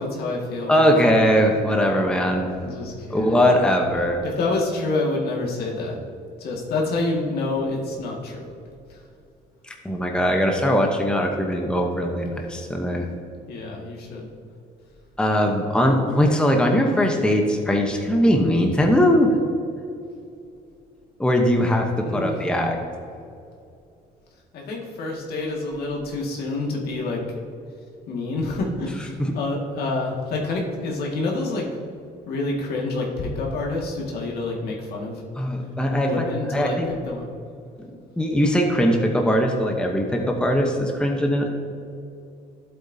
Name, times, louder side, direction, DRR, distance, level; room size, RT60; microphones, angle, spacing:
voice 1, 0.0-0.7 2.5-3.7 4.2-5.9 6.4-8.5 13.5-14.3 22.0-22.4 24.5-27.2 28.1-31.7 32.3-35.1 36.0-36.8 37.0-37.3, left 2 dB, 70° left, -1 dB, 2.0 m, -27 dB
voice 2, 0.7-2.5 3.1-4.2 9.6-13.1 15.2-19.3 21.2-22.8 29.2-29.3 35.4-36.3 36.5-36.9 37.8-41.5, equal, 5° left, 2 dB, 0.9 m, -20 dB
12.0 x 7.8 x 2.8 m, 2.6 s
cardioid pair, 110°, 17 cm